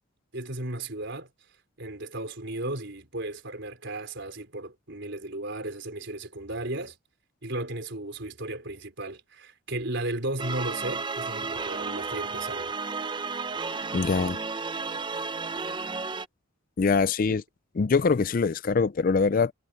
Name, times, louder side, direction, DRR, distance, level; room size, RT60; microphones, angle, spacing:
voice 1, 0.3-1.3 1.8-7.0 7.4-12.7 17.3-17.4, right 1 dB, 60° right, 4.7 m, -35 dB
sound 1, 10.4-16.3, right 4 dB, 20° right, 0.6 m, -33 dB
voice 2, 13.9-14.4 16.8-17.4 17.8-19.5, left 4 dB, 40° left, 0.4 m, -23 dB
head